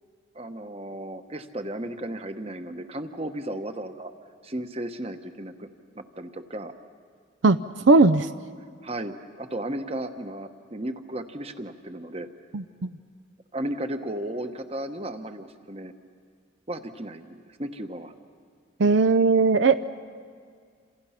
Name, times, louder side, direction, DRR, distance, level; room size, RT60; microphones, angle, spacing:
voice 1, 0.3-4.1 4.4-5.7 5.9-6.7 8.8-12.3 13.5-15.9 16.7-18.1, right 1 dB, 30° right, 8 dB, 1.1 m, -34 dB
voice 2, 7.9-8.3 12.5-12.6 18.8-19.9, right 3 dB, 70° right, 12 dB, 0.6 m, -18 dB
29.0 x 27.0 x 5.8 m, 2.1 s
head